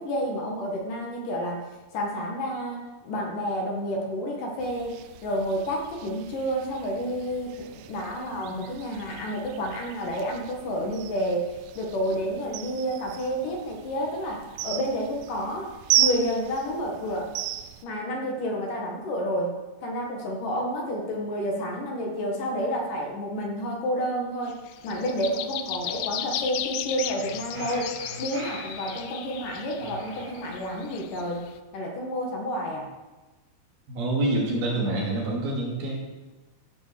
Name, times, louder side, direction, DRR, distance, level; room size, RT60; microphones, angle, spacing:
voice 1, 0.0-1.6 1.9-5.0 5.2-17.3 17.8-24.6 24.8-31.4 31.7-32.9, equal, 60° left, 0 dB, 3.0 m, -30 dB
sound 1, 4.6-17.8, right 12 dB, 90° right, 1.8 m, -34 dB
sound 2, 24.5-31.5, left 11 dB, 85° left, 1.9 m, -35 dB
sound 3, 26.9-29.1 29.7-31.0, right 1 dB, 40° right, 1.1 m, -42 dB
voice 2, 33.9-36.0, right 2 dB, 70° right, -3 dB, 4.5 m, -26 dB
15.0 x 6.2 x 6.8 m, 1.2 s
omnidirectional pair, 4.6 m